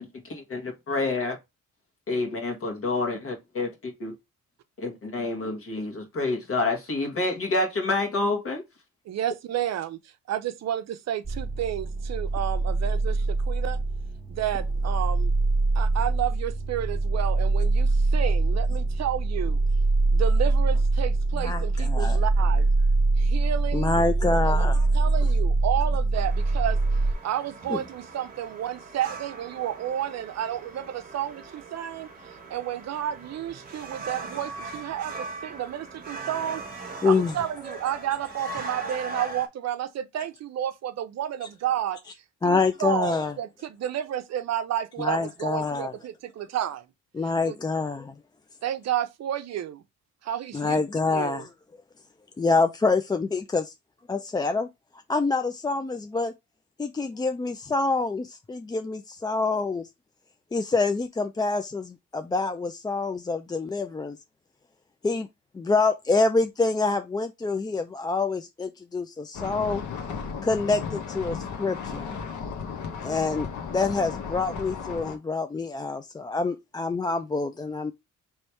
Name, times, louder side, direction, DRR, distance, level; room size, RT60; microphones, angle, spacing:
voice 1, 0.0-1.4 2.1-4.1 4.8-8.6, left 2 dB, 50° left, 1.5 m, -28 dB
voice 2, 9.1-10.0 10.3-13.8 14.3-15.3 15.7-19.6 20.1-22.7 23.2-23.9 24.5-24.7 24.9-26.8 27.2-32.1 32.5-42.0 42.4-46.8 47.4-47.6 48.6-49.8 50.2-50.8 51.1-51.4, right 11 dB, 60° right, 0.6 m, -31 dB
sound 1, 11.2-27.1, right 3 dB, ahead, 1.2 m, -23 dB
voice 3, 21.4-22.2 23.7-24.9 27.7-27.8 37.0-37.3 42.4-43.3 45.0-45.9 47.1-48.1 50.5-51.5 52.4-53.7 54.1-54.7 55.1-56.3 56.8-59.9 60.5-64.2 65.0-65.3 65.5-69.8 70.4-72.1 73.0-77.9, left 3 dB, 15° left, 0.3 m, -26 dB
sound 2, 26.1-39.5, right 3 dB, 30° right, 1.1 m, -40 dB
sound 3, 69.3-75.2, left 6 dB, 75° left, 1.0 m, -35 dB
3.3 x 3.1 x 4.4 m
cardioid pair, 90°, 30 cm